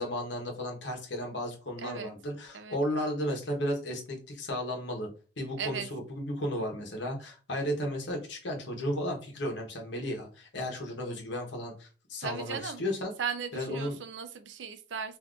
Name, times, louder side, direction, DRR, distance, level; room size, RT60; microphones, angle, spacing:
voice 1, 0.0-5.1 5.4-13.1 13.5-14.0, equal, 80° left, 1 dB, 0.9 m, -34 dB
voice 2, 1.8-2.1 2.5-2.8 5.6-5.9 12.2-12.8 13.2-15.2, right 6 dB, 80° right, 9 dB, 0.5 m, -37 dB
3.6 x 2.6 x 2.4 m, 0.35 s
head